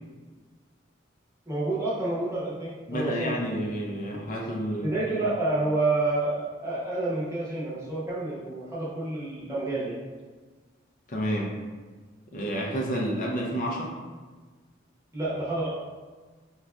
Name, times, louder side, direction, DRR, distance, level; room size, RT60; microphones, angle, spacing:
voice 1, 1.5-3.7 4.8-10.0 15.1-15.7, right 2 dB, 15° right, -7 dB, 0.8 m, -29 dB
voice 2, 2.9-4.9 11.1-11.5 12.3-13.9, equal, 40° left, -2 dB, 0.4 m, -30 dB
4.9 x 2.3 x 2.3 m, 1.4 s
head